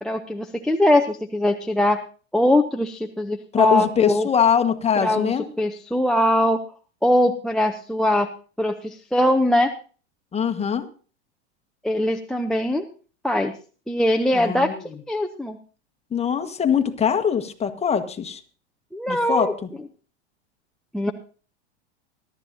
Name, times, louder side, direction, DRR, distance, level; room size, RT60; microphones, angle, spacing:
voice 1, 0.0-2.0 2.3-4.3 5.0-6.6 7.0-8.3 8.6-9.7 11.8-12.8 13.2-13.5 13.9-14.7 15.1-15.6 18.9-19.5 20.9-21.1, left 1 dB, ahead, 10 dB, 0.6 m, -21 dB
voice 2, 3.5-5.5 10.3-10.9 14.3-15.0 16.1-18.4 19.1-19.7, left 7 dB, 20° left, 7 dB, 1.4 m, -22 dB
22.0 x 12.0 x 2.7 m, 0.38 s
hypercardioid pair, 105°, 33 cm